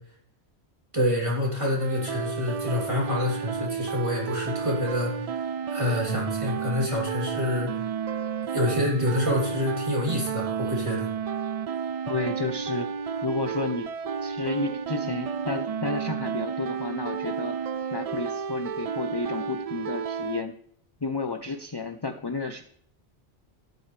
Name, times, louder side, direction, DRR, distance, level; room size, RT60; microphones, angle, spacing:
voice 1, 0.9-7.9 8.5-11.1, left 1 dB, 25° right, -3 dB, 3.5 m, -27 dB
sound 1, 1.8-20.4, right 6 dB, 60° right, 0.4 m, -31 dB
voice 2, 12.1-12.9 13.2-13.9 14.2-17.6 17.9-20.5 21.0-22.6, left 3 dB, 25° left, 8 dB, 0.6 m, -31 dB
12.5 x 11.0 x 3.3 m, 0.65 s
omnidirectional pair, 1.1 m